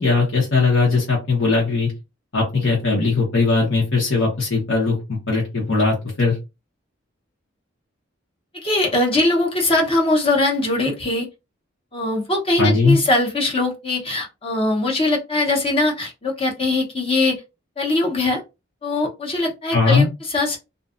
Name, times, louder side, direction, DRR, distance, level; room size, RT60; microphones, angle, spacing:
voice 1, 0.0-1.9 2.3-5.0 5.3-6.4 12.6-13.0 19.7-20.1, left 3 dB, 75° left, -3 dB, 0.9 m, -19 dB
voice 2, 8.6-11.3 11.9-17.4 17.8-18.4 18.8-20.6, left 2 dB, 30° left, 0 dB, 0.7 m, -21 dB
2.5 x 2.2 x 2.4 m, 0.25 s
head